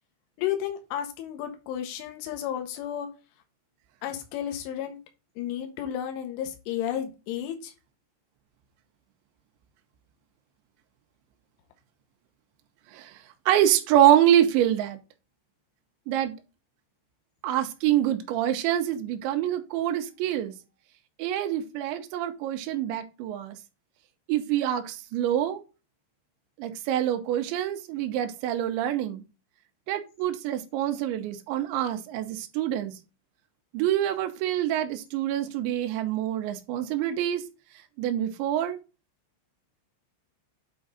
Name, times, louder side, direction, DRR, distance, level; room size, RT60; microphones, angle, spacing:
voice 1, 0.4-3.1 4.0-5.0 5.4-7.7, left 10 dB, 80° left, 5 dB, 3.8 m, -32 dB
voice 2, 13.5-15.0 16.1-16.3 17.4-20.5 21.2-23.6 24.3-25.6 26.6-29.2 29.9-33.0 33.7-37.5 38.0-38.8, right 11 dB, 80° right, 6 dB, 3.2 m, -26 dB
9.1 x 3.9 x 4.0 m, 0.29 s
omnidirectional pair, 5.5 m